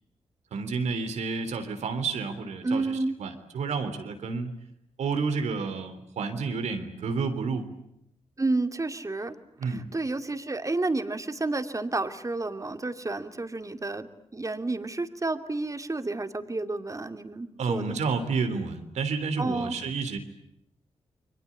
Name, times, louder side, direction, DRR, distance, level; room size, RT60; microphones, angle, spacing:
voice 1, 0.5-4.5 5.0-7.7 9.6-9.9 17.6-20.2, right 4 dB, 90° right, 9 dB, 3.4 m, -30 dB
voice 2, 2.6-3.1 8.4-9.3 9.6-14.1 14.3-18.0 19.4-19.8, right 2 dB, 30° right, 8 dB, 2.7 m, -30 dB
29.5 x 23.0 x 8.6 m, 0.76 s
cardioid pair, 55°, 11 cm